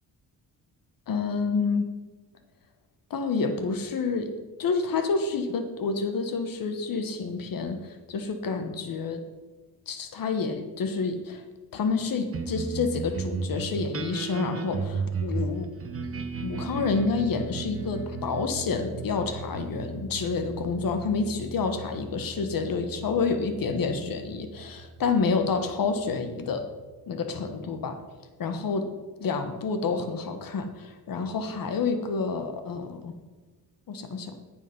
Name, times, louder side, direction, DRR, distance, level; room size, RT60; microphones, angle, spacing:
voice 1, 1.1-1.9 3.1-4.3 4.6-9.2 9.9-11.4 11.7-15.7 16.4-26.6 27.1-28.0 28.4-28.9 29.2-33.1 33.9-34.3, left 4 dB, 60° left, 8 dB, 1.4 m, -28 dB
sound 1, 12.3-27.0, right 4 dB, 35° right, 1.1 m, -36 dB
9.1 x 8.6 x 5.5 m, 1.3 s
cardioid pair, 105°, 39 cm